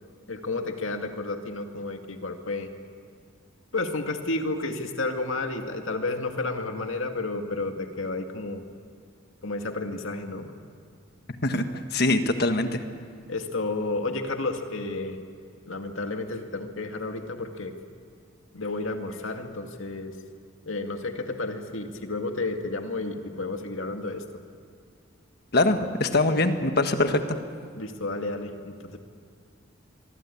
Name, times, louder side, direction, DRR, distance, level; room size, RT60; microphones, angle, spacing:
voice 1, 0.3-2.7 3.7-8.6 9.4-10.5 13.3-15.2 15.7-17.7 18.5-20.1 20.7-24.2 27.8-29.0, left 2 dB, 70° left, 5 dB, 2.2 m, -31 dB
voice 2, 11.4-12.8 25.5-27.2, left 2 dB, 50° left, 7 dB, 1.5 m, -23 dB
24.5 x 24.0 x 8.6 m, 2.1 s
head